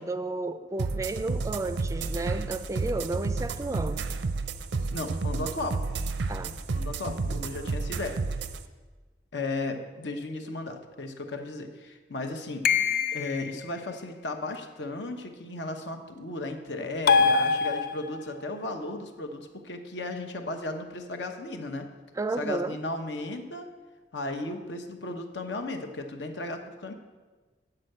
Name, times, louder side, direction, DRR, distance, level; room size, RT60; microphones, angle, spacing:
voice 1, 0.0-4.0 6.3-6.6 22.2-22.8, right 2 dB, 15° right, 11 dB, 0.3 m, -32 dB
sound 1, 0.8-8.6, right 4 dB, 80° right, 0.5 m, -31 dB
voice 2, 4.9-5.8 6.7-8.2 9.3-12.7 13.1-21.9 22.4-23.7 24.1-26.9, left 2 dB, 80° left, 5 dB, 0.9 m, -35 dB
sound 2, 12.6-13.6 17.1-18.3, left 5 dB, 55° left, 0.4 m, -23 dB
7.6 x 5.9 x 7.8 m, 1.3 s
head